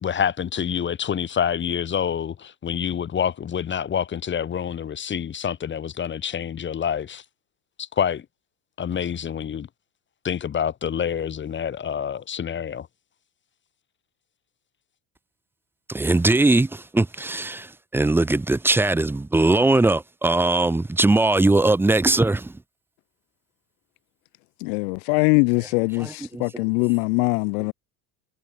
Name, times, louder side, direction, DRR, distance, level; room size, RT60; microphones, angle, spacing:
voice 1, 0.0-7.2 7.8-8.3 8.8-9.7 10.2-12.9, left 8 dB, 25° left, 2.0 m, -27 dB
voice 2, 15.9-22.5 26.0-26.6, right 2 dB, 5° right, 0.7 m, -20 dB
voice 3, 24.6-27.7, left 33 dB, 70° left, 1.0 m, -22 dB
supercardioid pair, 140°, 44 cm